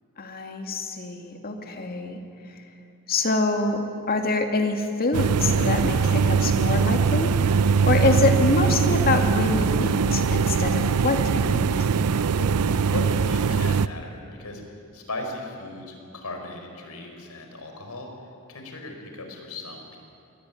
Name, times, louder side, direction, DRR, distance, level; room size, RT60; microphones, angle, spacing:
voice 1, 0.2-2.2 2.5-2.6 3.1-11.9, left 3 dB, 45° left, 5 dB, 2.3 m, -26 dB
sound 1, 5.1-13.9, right 5 dB, 85° right, 0.5 m, -22 dB
voice 2, 12.3-14.6 14.9-18.1 18.5-20.0, left 2 dB, 80° left, 3 dB, 4.8 m, -37 dB
22.5 x 19.0 x 9.3 m, 2.6 s
head